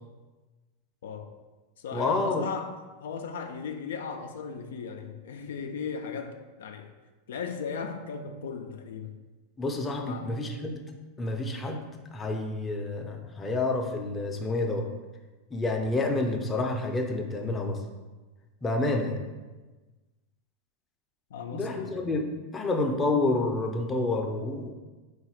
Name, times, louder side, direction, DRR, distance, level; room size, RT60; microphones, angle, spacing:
voice 1, 1.0-1.4 1.8-6.9 7.3-9.2 10.0-10.4 21.3-22.1, left 5 dB, 80° left, 5 dB, 0.3 m, -37 dB
voice 2, 1.9-2.5 9.6-10.8 11.2-14.9 15.5-17.8 18.6-19.2 21.5-22.3 22.5-24.7, left 2 dB, 20° left, 2 dB, 0.5 m, -29 dB
3.9 x 2.3 x 4.3 m, 1.2 s
hypercardioid pair, 115°, 0 cm